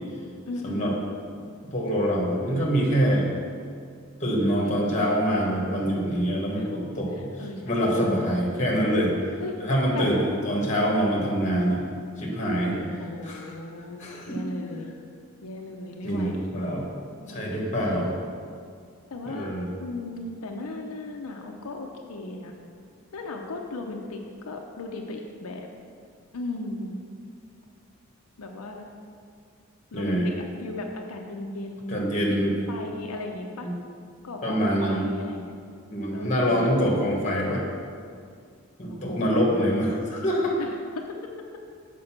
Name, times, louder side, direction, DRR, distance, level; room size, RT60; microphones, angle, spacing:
voice 1, 0.5-1.1 4.6-5.2 6.5-6.7 7.1-8.5 9.4-9.5 9.9-10.2 12.6-14.9 15.4-16.5 17.2-18.1 19.1-19.5 19.8-22.5 23.1-25.7 26.3-27.0 28.4-28.9 29.9-33.7 34.2-35.5 36.1-36.8 38.9-39.8 40.6-41.2, left 2 dB, 85° left, 2 dB, 0.6 m, -36 dB
voice 2, 1.7-3.3 4.2-7.3 7.6-9.1 9.6-11.8 12.2-12.7 13.2-13.5 14.0-14.4 16.0-16.9 17.3-18.1 19.3-19.7 29.9-30.3 31.9-32.5 33.6-33.7 34.4-35.1 35.9-37.6 38.8-40.6, equal, 35° left, -2 dB, 1.4 m, -25 dB
6.5 x 5.2 x 5.9 m, 2.2 s
head